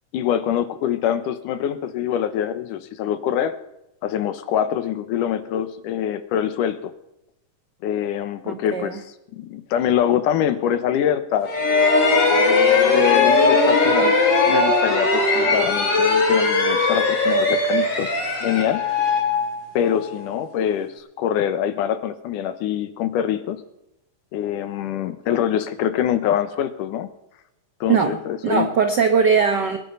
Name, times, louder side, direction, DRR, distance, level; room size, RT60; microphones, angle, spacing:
voice 1, 0.1-3.6 4.0-6.9 7.8-9.0 9.3-11.5 12.4-14.2 14.5-18.1 18.4-18.8 19.7-23.6 24.3-27.1 27.8-28.7, left 10 dB, 90° left, 12 dB, 2.7 m, -24 dB
voice 2, 8.4-8.9 27.9-28.2 28.4-29.8, right 6 dB, 75° right, 6 dB, 0.9 m, -20 dB
sound 1, 11.4-20.1, left 3 dB, 55° left, 4.1 m, -19 dB
21.5 x 9.9 x 5.5 m, 0.86 s
omnidirectional pair, 3.6 m